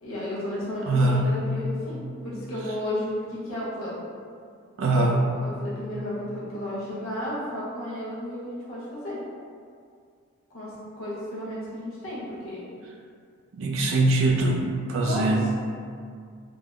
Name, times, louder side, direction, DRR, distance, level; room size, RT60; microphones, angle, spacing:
voice 1, 0.0-4.0 5.1-9.2 10.5-12.6 15.1-15.4, left 1 dB, 70° left, -8 dB, 0.7 m, -33 dB
voice 2, 0.9-1.3 4.8-5.2 13.5-14.6 14.9-15.5, right 2 dB, 65° right, 0 dB, 0.3 m, -22 dB
3.3 x 2.0 x 2.3 m, 2.2 s
head